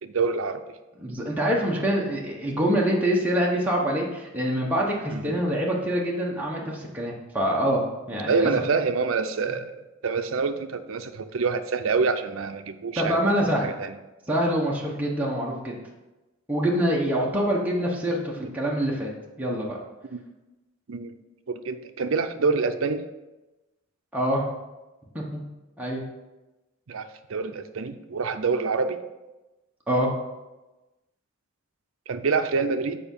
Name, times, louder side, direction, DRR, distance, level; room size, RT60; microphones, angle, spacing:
voice 1, 0.0-0.6 5.1-5.3 8.3-9.7 10.0-13.2 13.6-14.0 20.1-20.2 20.9-21.1 21.5-23.0 26.9-27.0 27.3-29.0 32.1-33.0, right 4 dB, 70° right, 8 dB, 0.6 m, -26 dB
voice 2, 1.0-7.8 8.1-8.5 13.0-13.7 14.3-15.7 16.5-19.1 19.4-19.8 24.1-24.5 25.1-25.4 25.8-26.0 29.9-30.1, equal, 10° right, -3 dB, 1.0 m, -25 dB
6.9 x 5.0 x 5.4 m, 1.1 s
head